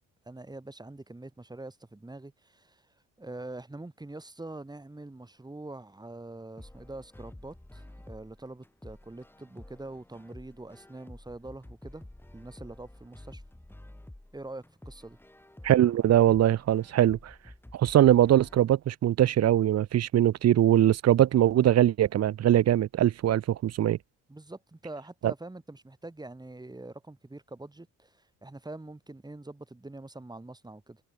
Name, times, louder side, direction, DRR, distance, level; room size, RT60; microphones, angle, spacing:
voice 1, 0.3-2.8 3.2-12.0 12.3-13.4 14.3-15.2 24.3-31.0, right 2 dB, 15° right, 6.2 m, -44 dB
sound 1, 6.6-18.6, left 1 dB, 5° left, 4.9 m, -50 dB
voice 2, 15.6-17.3 17.7-24.0, right 12 dB, 55° right, 0.8 m, -22 dB
cardioid pair, 90°, 30 cm